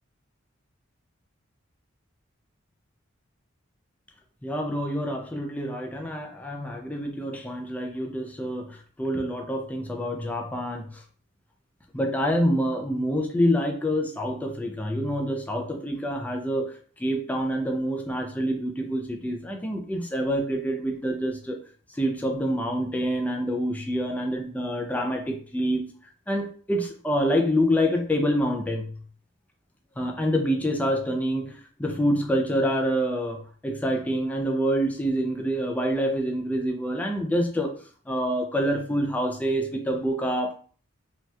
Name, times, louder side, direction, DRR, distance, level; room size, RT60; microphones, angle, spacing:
voice 1, 4.4-11.0 11.9-21.6 22.0-25.8 26.3-28.9 30.0-37.8 38.1-40.5, equal, 10° left, 2 dB, 0.3 m, -27 dB
3.2 x 2.7 x 2.2 m, 0.43 s
head